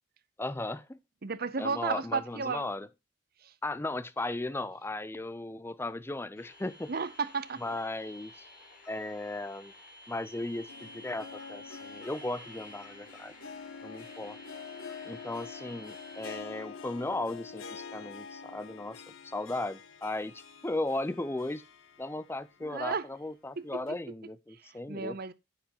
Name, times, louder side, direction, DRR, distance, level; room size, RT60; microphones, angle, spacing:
voice 1, 0.4-1.0 1.6-2.9 3.6-6.9 7.6-8.5 8.9-9.7 10.1-13.3 13.8-14.4 15.0-21.6 22.0-25.2, left 2 dB, 10° left, 0.5 m, -36 dB
voice 2, 1.2-2.6 6.9-7.6 22.6-23.0 23.6-23.7 24.9-25.3, right 5 dB, 45° right, 0.7 m, -33 dB
sound 1, 6.4-16.4, left 1 dB, 45° left, 3.7 m, -52 dB
Harp, 10.4-22.6 22.9-23.0 23.9-24.0, left 5 dB, 80° left, 1.3 m, -47 dB
10.5 x 7.8 x 2.9 m
head